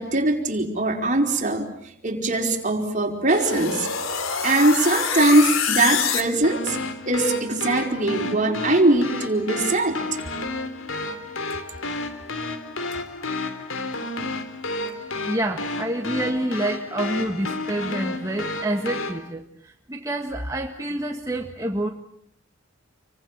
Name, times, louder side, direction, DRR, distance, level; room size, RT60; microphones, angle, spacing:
voice 1, 0.0-1.7 2.0-3.9 4.4-6.8 7.0-10.0, right 2 dB, 40° right, 2 dB, 4.6 m, -21 dB
sound 1, 3.3-19.2, left 4 dB, 90° left, 3.6 m, -29 dB
voice 2, 15.2-21.9, right 1 dB, 15° right, 1 dB, 1.8 m, -27 dB
29.5 x 24.0 x 7.4 m, 0.69 s
head